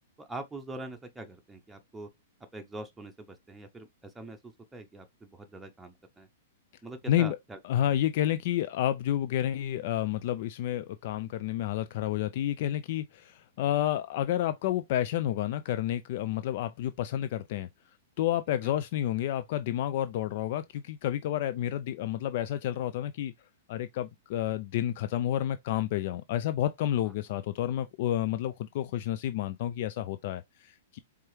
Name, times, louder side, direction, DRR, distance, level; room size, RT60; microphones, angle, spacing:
voice 1, 0.2-2.1 2.5-6.3 6.8-7.6 18.6-18.7, right 2 dB, 10° right, 0.7 m, -43 dB
voice 2, 7.6-17.7 18.2-23.3 23.7-31.0, left 12 dB, 50° left, 0.3 m, -30 dB
4.6 x 3.4 x 3.1 m
figure-of-eight pair, 105°, 0 cm